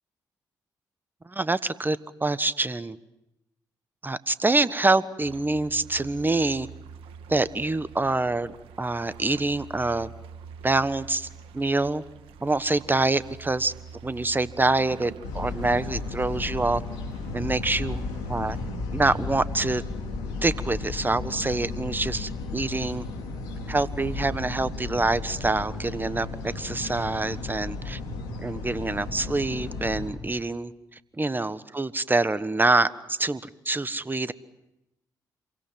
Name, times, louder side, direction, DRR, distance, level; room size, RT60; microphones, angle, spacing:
voice 1, 1.2-3.0 4.0-6.7 7.3-10.1 10.6-11.3 11.5-12.0 12.4-13.7 14.0-16.8 17.3-18.0 18.3-18.6 18.9-19.8 20.4-23.1 23.7-28.0 28.4-30.7 31.1-34.3, right 2 dB, 20° right, 14 dB, 1.3 m, -26 dB
sound 1, 5.2-18.7, right 6 dB, 80° right, 1.6 m, -45 dB
sound 2, 15.2-30.1, left 3 dB, 85° left, 4.5 m, -34 dB
27.5 x 23.5 x 7.6 m, 0.89 s
hypercardioid pair, 45°, 9 cm